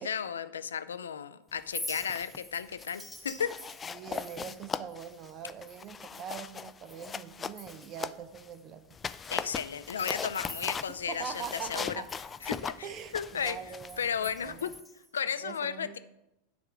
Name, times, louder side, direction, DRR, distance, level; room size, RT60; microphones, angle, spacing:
voice 1, 0.0-3.5 9.3-11.9 12.4-12.9 13.1-13.6 14.0-14.7 15.1-16.0, left 7 dB, 85° left, 12 dB, 0.4 m, -34 dB
Chink clink, 1.6-7.2 7.5-8.1 8.5-8.6 9.1-11.5 11.7-15.2, left 1 dB, ahead, 1.7 m, -47 dB
sound 1, 1.8-2.4 2.7-3.0 3.4-8.5 8.9-14.8, left 6 dB, 25° left, 0.3 m, -40 dB
voice 2, 3.8-8.8 10.4-10.5 10.9-12.1 12.8-14.7 15.4-16.0, right 8 dB, 40° right, 11 dB, 0.7 m, -43 dB
9.3 x 3.6 x 6.2 m, 0.89 s
hypercardioid pair, 95°, 0 cm